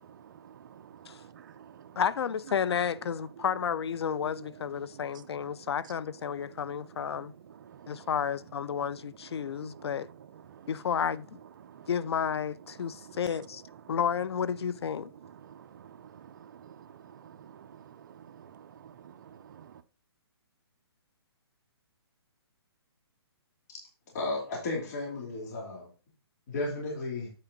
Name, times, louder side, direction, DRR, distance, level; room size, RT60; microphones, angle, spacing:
voice 1, 0.0-2.0 3.4-3.5 4.0-4.5 4.8-5.7 6.3-8.1 8.7-8.8 9.3-10.7 11.6-11.9 12.8-13.2 13.8-14.0 15.2-19.8, right 8 dB, 45° right, 0.5 m, -51 dB
voice 2, 2.0-7.3 7.9-10.1 10.7-11.4 11.9-13.6 13.9-15.1, left 7 dB, 75° left, 0.4 m, -31 dB
voice 3, 24.1-25.9 26.5-27.3, left 2 dB, 40° left, 2.8 m, -34 dB
8.3 x 5.1 x 3.9 m
hypercardioid pair, 160°, 14 cm